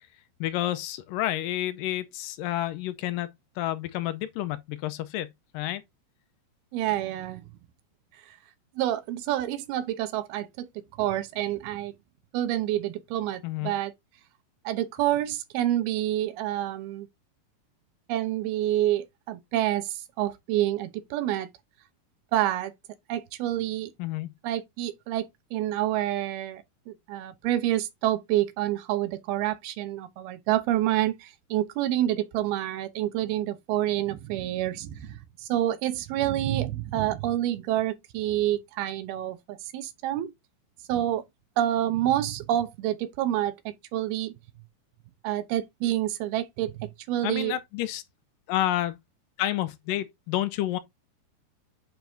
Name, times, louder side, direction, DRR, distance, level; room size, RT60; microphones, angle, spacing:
voice 1, 0.4-3.3 3.6-5.3 5.5-5.8 13.4-13.7 24.0-24.3 47.2-48.0 48.5-49.0 49.4-50.8, left 14 dB, 75° left, 2.2 m, -29 dB
voice 2, 6.7-7.4 8.8-10.7 11.0-11.9 12.3-13.9 14.7-17.1 18.1-21.5 22.3-22.7 23.1-23.9 24.4-25.3 25.5-40.3 40.9-41.2 41.6-44.3 45.2-47.6, right 13 dB, 85° right, 2.8 m, -28 dB
9.1 x 5.2 x 2.7 m
omnidirectional pair, 4.4 m